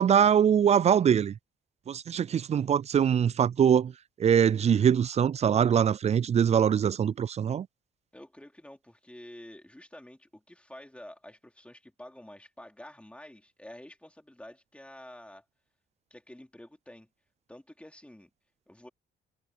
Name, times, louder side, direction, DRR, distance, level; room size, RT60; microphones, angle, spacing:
voice 1, 0.0-1.3 1.9-3.9 4.2-7.7, right 8 dB, 35° right, 0.3 m, -23 dB
voice 2, 8.1-15.4 16.1-17.1 17.5-18.3 18.7-18.9, left 1 dB, 5° left, 3.8 m, -49 dB
cardioid pair, 90°, 20 cm